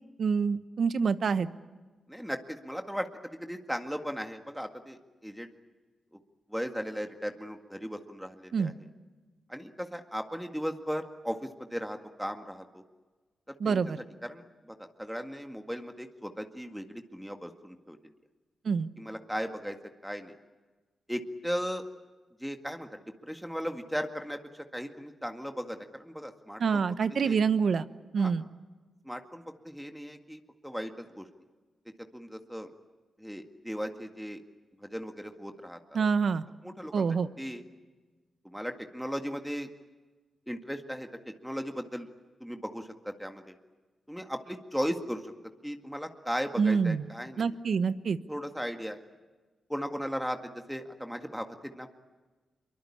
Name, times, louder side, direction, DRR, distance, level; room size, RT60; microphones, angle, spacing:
voice 1, 0.2-1.5 8.5-8.7 13.6-14.0 18.6-18.9 26.6-27.9 28.1-28.5 35.9-36.4 36.9-37.3 46.6-47.0 47.4-48.2, right 5 dB, 65° right, 13 dB, 1.0 m, -26 dB
voice 2, 2.1-5.5 6.1-6.2 6.5-8.7 9.5-12.8 13.5-13.8 14.2-18.1 19.0-19.8 20.0-20.3 21.1-21.8 22.4-26.8 27.2-27.4 28.2-28.3 29.0-31.3 32.1-32.7 33.2-34.4 34.8-36.0 36.6-37.1 37.4-37.6 38.4-39.7 40.5-42.1 42.4-43.6 44.1-45.3 45.6-47.5 48.3-49.0 49.7-51.9, equal, ahead, 5 dB, 2.0 m, -37 dB
24.0 x 23.0 x 8.7 m, 1.3 s
cardioid pair, 60°, 0 cm